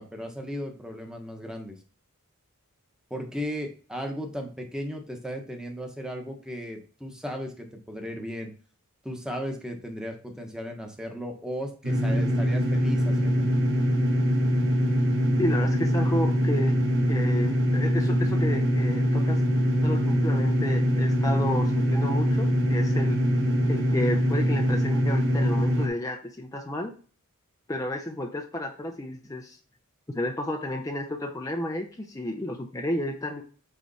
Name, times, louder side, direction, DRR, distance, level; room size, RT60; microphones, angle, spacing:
voice 1, 0.0-1.7 3.1-8.5 9.0-13.5, equal, 5° right, 2 dB, 1.2 m, -36 dB
sound 1, 11.8-25.9, equal, 60° right, 1.5 m, -23 dB
voice 2, 15.4-16.8 17.1-19.4 19.8-23.2 23.7-27.0 27.7-29.6 30.1-33.4, left 1 dB, 15° left, 2 dB, 0.6 m, -32 dB
8.2 x 3.3 x 4.2 m, 0.39 s
head